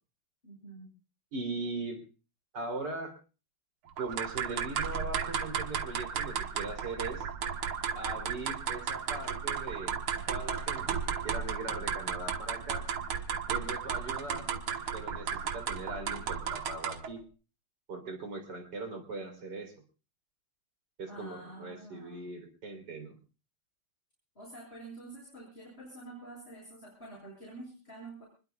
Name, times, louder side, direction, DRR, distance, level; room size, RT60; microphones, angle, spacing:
voice 1, 0.4-0.9 13.5-13.8 21.1-22.3 24.3-28.2, right 2 dB, 30° left, -4 dB, 6.3 m, -48 dB
voice 2, 1.3-2.0 2.5-3.2 4.0-7.3 7.9-10.0 10.3-12.9 13.5-14.5 14.9-17.2 17.9-19.7 21.0-23.2, right 3 dB, 55° right, 5 dB, 3.8 m, -40 dB
sound 1, 4.0-17.2, right 7 dB, 80° right, 2.1 m, -34 dB
25.5 x 21.0 x 2.3 m, 0.35 s
omnidirectional pair, 2.3 m